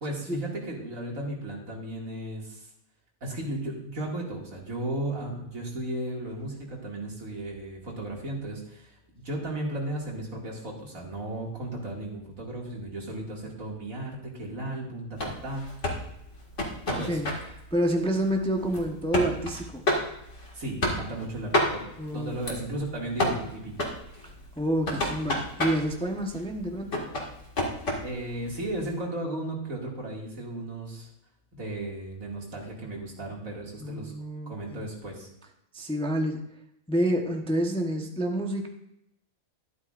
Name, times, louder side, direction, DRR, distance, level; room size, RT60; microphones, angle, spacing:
voice 1, 0.0-2.7 3.2-15.7 16.9-17.2 20.5-21.8 22.1-23.8 28.0-31.1 31.5-34.1 34.5-35.3, right 1 dB, 70° right, -2 dB, 2.8 m, -35 dB
sound 1, 15.2-28.9, left 1 dB, 60° left, 2.4 m, -32 dB
voice 2, 17.7-19.8 22.0-22.4 24.6-27.0 33.8-34.8 35.7-36.4 36.9-38.7, right 1 dB, 5° left, 2 dB, 0.9 m, -28 dB
12.5 x 11.5 x 2.5 m, 0.78 s
omnidirectional pair, 1.5 m